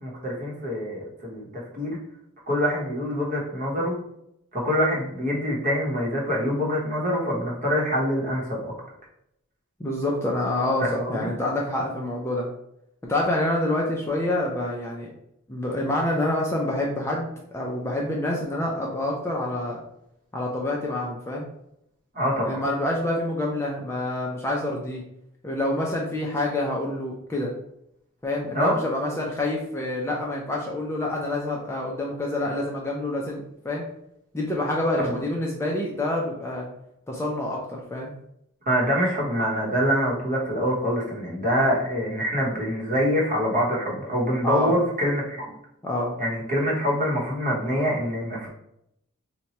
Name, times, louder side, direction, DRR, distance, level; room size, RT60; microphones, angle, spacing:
voice 1, 0.0-2.0 2.5-4.0 4.5-8.7 10.8-11.3 22.1-22.6 28.5-28.8 35.0-35.1 38.7-45.5 46.2-48.5, equal, 35° right, -3 dB, 0.9 m, -25 dB
voice 2, 9.8-12.5 13.1-15.1 15.5-19.8 20.3-21.5 22.4-25.0 25.4-27.5 28.2-33.8 34.3-36.7 37.1-38.1 44.4-44.8 45.8-46.2, left 1 dB, 10° left, -2 dB, 0.4 m, -27 dB
2.8 x 2.2 x 4.1 m, 0.78 s
head